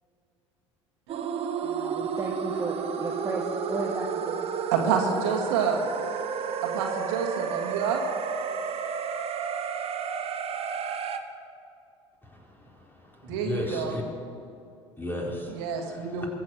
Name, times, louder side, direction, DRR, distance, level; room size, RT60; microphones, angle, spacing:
sound 1, 1.1-11.2, right 7 dB, 40° right, 1.4 m, -31 dB
voice 1, 1.6-4.5, right 3 dB, 20° right, -1 dB, 1.8 m, -34 dB
voice 2, 4.7-5.8 6.6-8.0 13.3-14.0 15.5-16.3, right 6 dB, 65° right, 3 dB, 2.0 m, -28 dB
voice 3, 12.2-14.0 15.0-16.3, left 1 dB, 15° left, -2 dB, 4.3 m, -35 dB
22.5 x 7.8 x 7.8 m, 2.6 s
figure-of-eight pair, 65°, 15 cm